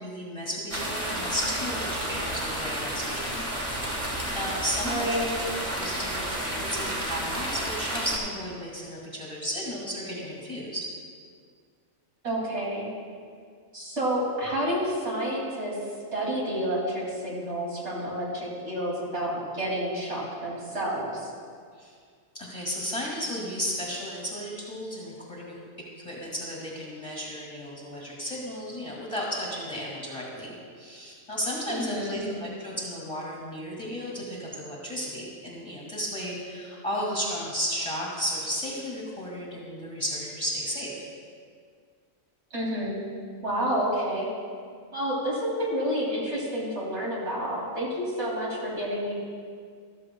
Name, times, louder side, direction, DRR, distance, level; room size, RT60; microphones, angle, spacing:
voice 1, 0.0-3.5 3.8-4.0 4.3-10.9 21.7-21.9 22.3-25.6 26.0-41.1, equal, 25° left, -4 dB, 2.2 m, -34 dB
sound 1, 0.7-8.2, right 1 dB, 30° right, 1.7 m, -31 dB
voice 2, 4.8-5.3 12.2-12.9 13.7-15.7 16.1-21.3 31.7-32.2 42.5-43.0 43.4-44.3 44.9-49.1, equal, 55° right, -5 dB, 2.9 m, -29 dB
14.5 x 13.0 x 2.3 m, 2.1 s
omnidirectional pair, 1.4 m